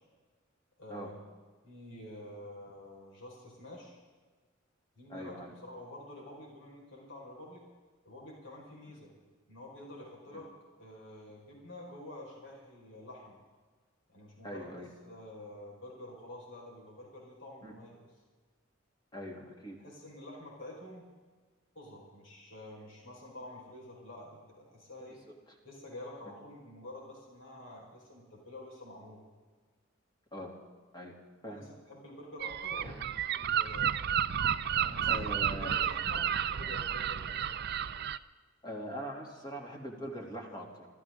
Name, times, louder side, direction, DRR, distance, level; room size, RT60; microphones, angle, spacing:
voice 1, 0.8-1.2 1.6-4.0 4.9-7.6 8.0-9.1 9.5-10.5 10.8-13.4 14.1-14.7 15.0-18.0 19.8-21.1 21.7-25.2 25.6-29.2 31.4-33.0 33.3-34.0 34.6-37.5, left 1 dB, 65° left, -2 dB, 5.0 m, -48 dB
voice 2, 5.1-5.5 14.4-14.9 17.6-17.7 19.1-19.8 30.3-30.6 30.9-31.2 31.4-31.6 32.8-33.0 35.1-35.7 38.6-40.9, equal, 20° left, 0 dB, 2.8 m, -42 dB
Gull seagull, 32.4-38.2, right 9 dB, 55° right, 0.5 m, -31 dB
26.0 x 14.5 x 3.8 m, 1.4 s
head